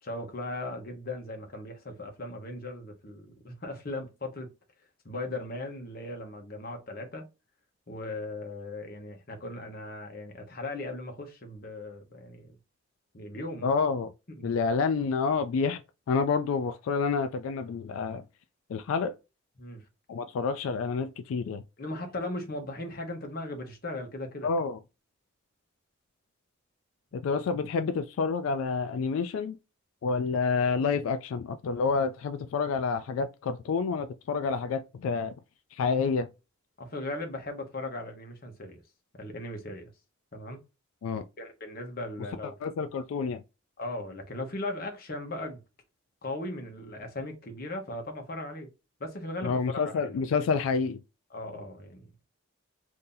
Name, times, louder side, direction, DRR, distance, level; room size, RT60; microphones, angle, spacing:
voice 1, 0.0-4.5 5.0-7.2 7.9-12.6 13.1-13.7 14.3-14.5 19.6-19.8 21.8-24.5 36.8-38.8 39.2-39.9 40.3-40.6 41.4-42.5 43.8-45.6 46.2-48.7 49.0-50.2 51.3-52.2, left 2 dB, 45° left, 0.9 m, -38 dB
voice 2, 13.6-14.1 14.4-15.8 16.1-18.2 18.7-19.2 20.1-21.6 24.4-24.8 27.1-29.6 30.0-35.3 35.7-36.3 41.0-41.2 42.4-43.4 49.4-51.0, left 5 dB, 90° left, 0.3 m, -28 dB
2.7 x 2.7 x 3.7 m
head